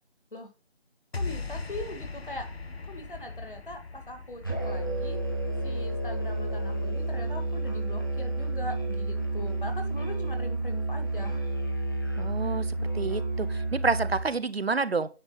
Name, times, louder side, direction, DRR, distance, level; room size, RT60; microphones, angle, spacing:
sound 1, 1.1-7.6, left 3 dB, 65° left, 1.0 m, -40 dB
voice 1, 1.2-2.5 2.9-5.2 5.6-11.3, left 1 dB, 50° left, 2.2 m, -41 dB
Musical instrument, 4.4-14.3, right 2 dB, 20° left, 1.1 m, -30 dB
voice 2, 12.2-12.7 12.9-15.1, right 4 dB, 65° right, 0.7 m, -28 dB
9.6 x 3.6 x 5.5 m
figure-of-eight pair, 175°, 33 cm